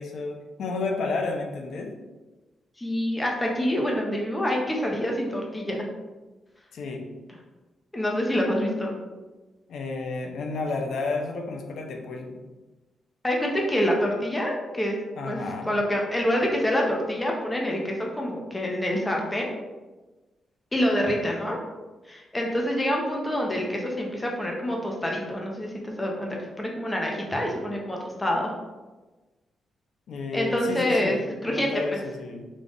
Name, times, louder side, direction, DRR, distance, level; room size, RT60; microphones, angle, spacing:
voice 1, 0.0-1.9 6.7-7.1 9.7-12.4 15.1-15.7 30.1-32.5, left 3 dB, 70° left, 2 dB, 0.6 m, -31 dB
voice 2, 2.8-5.9 7.9-8.9 13.2-14.9 15.3-15.4 15.7-19.5 20.7-21.6 22.1-25.7 26.0-28.5 30.3-31.7, equal, 15° left, -1 dB, 0.8 m, -26 dB
3.9 x 2.4 x 3.6 m, 1.2 s
cardioid pair, 105°, 0 cm